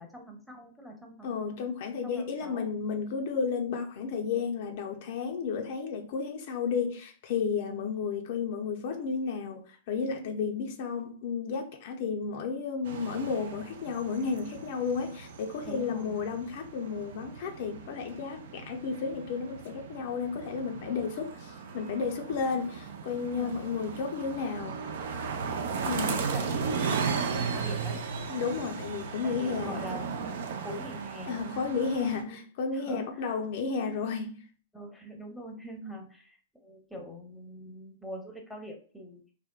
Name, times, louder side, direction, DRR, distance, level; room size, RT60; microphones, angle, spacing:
voice 1, 0.0-1.5 2.0-2.7 7.7-8.0 15.6-16.2 23.3-23.6 26.2-28.0 29.2-30.1 30.5-31.8 32.2-32.4 32.7-33.1 34.7-39.2, equal, ahead, 0.8 m, -43 dB
voice 2, 1.2-24.8 25.8-26.2 28.3-29.9 31.3-34.4, left 5 dB, 55° left, 0.4 m, -32 dB
sound 1, 12.8-32.2, right 5 dB, 60° right, 0.4 m, -36 dB
3.4 x 2.1 x 2.2 m
hypercardioid pair, 105°, 0 cm